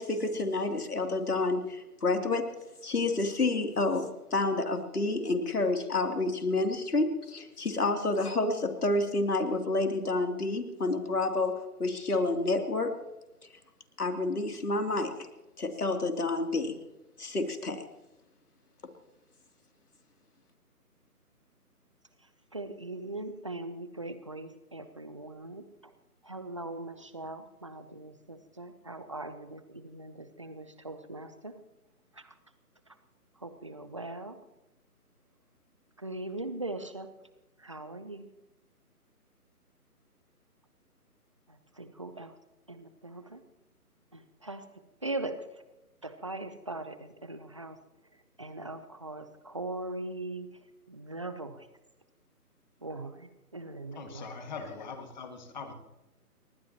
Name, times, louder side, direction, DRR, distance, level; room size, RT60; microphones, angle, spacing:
voice 1, 0.0-2.5 2.8-12.9 14.0-15.1 15.6-16.8 17.2-17.8, left 2 dB, 70° left, 3.1 m, -29 dB
voice 2, 22.5-25.6 26.2-31.5 32.2-32.3 33.4-34.4 36.0-37.1 37.6-38.3 41.8-42.3 42.7-43.4 44.1-44.6 45.0-45.4 46.0-47.8 48.4-50.5 50.9-51.7 52.8-54.3, right 2 dB, 20° right, 0.7 m, -40 dB
voice 3, 53.9-55.7, left 5 dB, 30° left, 2.0 m, -41 dB
30.0 x 13.5 x 3.0 m
figure-of-eight pair, 150°, 47 cm